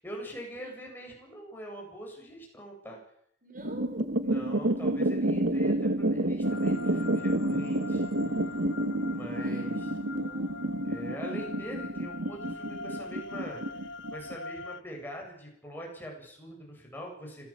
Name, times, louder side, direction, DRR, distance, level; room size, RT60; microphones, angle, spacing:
voice 1, 0.0-3.0 4.3-8.0 9.0-9.9 10.8-13.8 14.1-17.5, equal, 10° left, -1 dB, 8.0 m, -43 dB
voice 2, 3.4-4.2 9.3-10.8, right 1 dB, 45° right, 4 dB, 5.3 m, -48 dB
sound 1, 3.6-14.4, right 1 dB, 80° right, 1.4 m, -29 dB
sound 2, 6.4-14.8, left 3 dB, 80° left, 1.2 m, -43 dB
26.0 x 17.5 x 7.5 m, 0.71 s
head